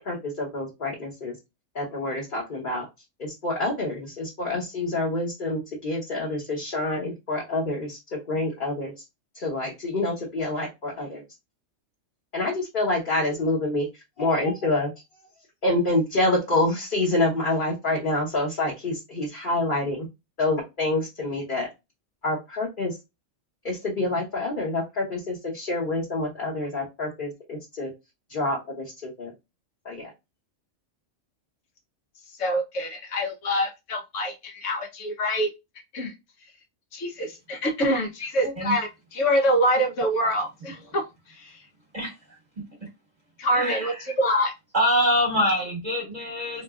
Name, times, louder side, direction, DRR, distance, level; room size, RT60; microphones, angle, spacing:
voice 1, 0.0-1.3 1.7-2.8 3.2-9.0 9.3-11.2 12.3-13.9 14.2-14.9 15.6-20.1 20.4-21.7 22.2-23.0 23.6-27.9 28.3-29.3 29.8-30.1, left 2 dB, 45° left, -4 dB, 1.1 m, -27 dB
voice 2, 32.4-35.5 35.9-36.1 36.9-41.0 41.4-41.6 43.4-44.5, equal, 75° left, 3 dB, 1.3 m, -25 dB
voice 3, 38.4-38.8 41.9-42.1 43.5-43.9 44.7-46.6, equal, 35° right, -1 dB, 1.2 m, -24 dB
3.7 x 3.0 x 2.4 m, 0.23 s
omnidirectional pair, 1.3 m